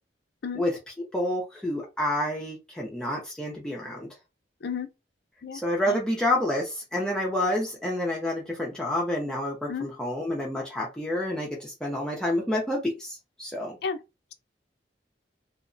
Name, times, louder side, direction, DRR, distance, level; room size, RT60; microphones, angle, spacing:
voice 1, 1.1-4.1 5.6-13.8, left 1 dB, 5° left, 0.5 m, -28 dB
voice 2, 5.4-6.0 9.7-9.9 13.8-14.0, left 5 dB, 65° left, 0.4 m, -33 dB
2.7 x 2.1 x 2.5 m
head